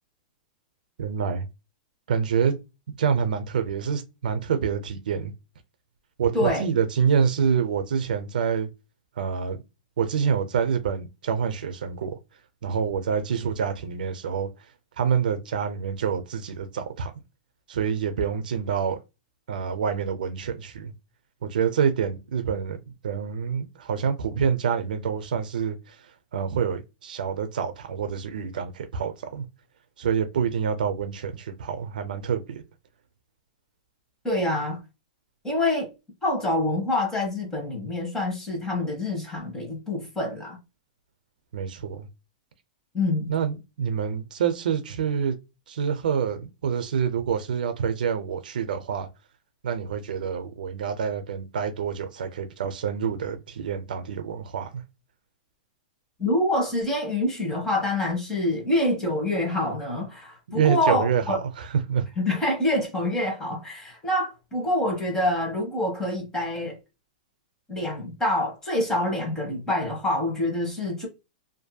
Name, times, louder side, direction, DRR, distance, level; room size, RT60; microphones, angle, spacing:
voice 1, 1.0-1.5 2.1-2.6 2.9-5.3 6.2-8.7 9.2-9.6 10.0-12.2 12.6-14.5 15.0-17.1 17.7-19.0 19.5-20.9 21.4-26.0 26.3-29.5 30.0-32.6 41.5-42.1 43.3-45.4 45.7-49.1 49.6-54.8 60.5-62.1, right 7 dB, 90° right, 0.5 m, -27 dB
voice 2, 6.3-6.6 34.2-34.8 35.4-35.9 36.2-40.6 42.9-43.3 56.2-61.4 62.2-66.8 67.7-71.1, left 1 dB, 10° left, 1.0 m, -26 dB
2.6 x 2.5 x 2.2 m
supercardioid pair, 155°, 4 cm